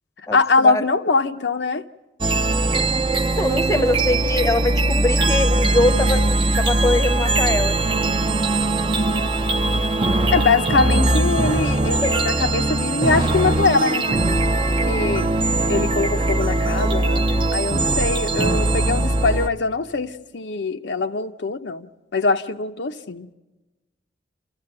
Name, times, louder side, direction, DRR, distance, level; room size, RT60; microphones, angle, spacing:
voice 1, 0.3-1.8 10.3-14.2 14.9-15.3 15.7-17.2 17.5-23.3, left 4 dB, 75° left, 0.7 m, -22 dB
sound 1, 2.2-19.5, right 2 dB, 30° right, 0.7 m, -20 dB
voice 2, 3.4-6.2 6.6-7.8 12.0-12.1, left 2 dB, 15° left, 0.8 m, -22 dB
28.0 x 14.5 x 8.8 m
head